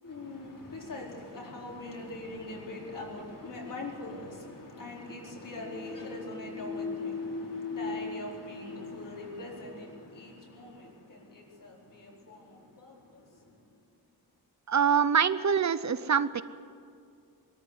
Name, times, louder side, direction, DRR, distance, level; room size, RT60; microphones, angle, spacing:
voice 1, 0.0-13.8, left 2 dB, 55° left, -2 dB, 4.5 m, -42 dB
sound 1, 5.4-9.9, left 4 dB, 75° left, 4.6 m, -39 dB
voice 2, 14.7-16.4, right 7 dB, 45° right, 14 dB, 0.7 m, -25 dB
22.0 x 14.0 x 9.7 m, 2.4 s
wide cardioid pair, 170°, 39 cm